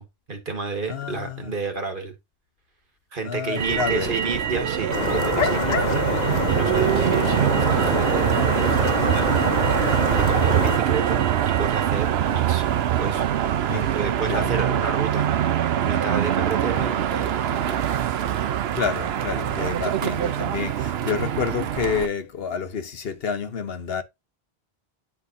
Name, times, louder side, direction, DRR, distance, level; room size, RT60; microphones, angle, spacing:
voice 1, 0.0-2.1 3.1-9.5 9.8-12.6 13.0-13.2 13.7-17.8, right 4 dB, 55° right, 1.7 m, -31 dB
voice 2, 0.9-1.5 3.2-4.1 13.7-13.9 14.3-14.6 18.7-24.0, left 6 dB, 70° left, 1.2 m, -29 dB
Motor vehicle (road), 3.6-22.1, right 10 dB, 80° right, 0.9 m, -23 dB
sound 1, 4.9-10.8, left 5 dB, 45° left, 0.9 m, -26 dB
9.9 x 4.6 x 2.6 m
omnidirectional pair, 1.0 m